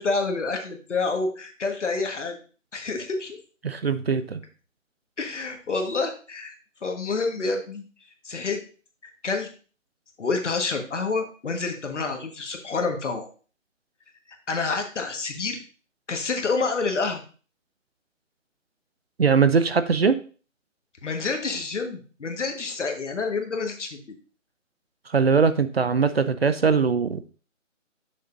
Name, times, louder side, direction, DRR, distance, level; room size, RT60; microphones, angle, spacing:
voice 1, 0.0-2.4 2.7-3.4 5.2-6.5 6.8-7.8 8.2-8.6 9.2-9.5 10.2-13.2 14.5-15.6 16.1-17.2 21.0-24.0, left 4 dB, 60° left, 4 dB, 1.6 m, -28 dB
voice 2, 3.6-4.4 19.2-20.2 25.1-27.2, right 5 dB, 50° right, 12 dB, 0.5 m, -21 dB
6.6 x 6.6 x 2.6 m, 0.37 s
figure-of-eight pair, 165°, 40 cm